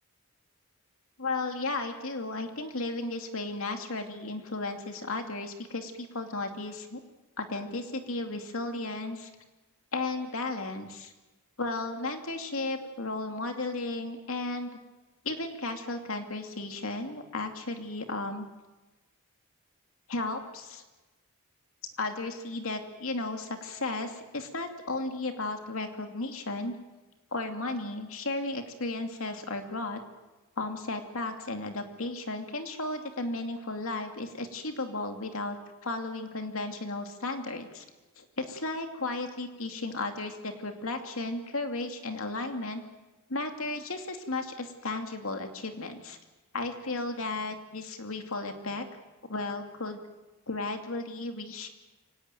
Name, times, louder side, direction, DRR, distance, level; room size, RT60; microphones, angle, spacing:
voice 1, 1.2-7.0 7.4-9.3 9.9-11.1 11.6-14.7 15.2-18.5 20.1-20.8 22.0-26.7 27.3-30.0 30.6-35.6 35.8-37.8 38.2-42.8 43.3-46.2 46.5-48.9 49.3-50.0 50.5-51.7, left 2 dB, 70° left, 5 dB, 2.6 m, -34 dB
24.5 x 18.5 x 9.1 m, 1.1 s
head